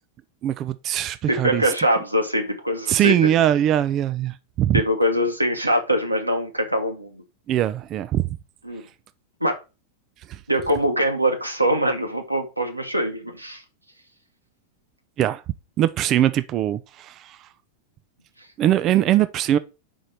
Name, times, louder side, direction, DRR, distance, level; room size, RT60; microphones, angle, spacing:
voice 1, 0.4-1.7 2.9-4.8 7.5-8.3 10.3-10.4 15.2-15.4 15.8-17.5 18.6-19.6, right 12 dB, 35° right, 0.5 m, -21 dB
voice 2, 1.3-3.3 4.7-7.2 8.6-8.8 9.4-9.6 10.5-13.6, equal, 85° right, 1.4 m, -23 dB
5.4 x 5.0 x 5.7 m
figure-of-eight pair, 90°, 0 cm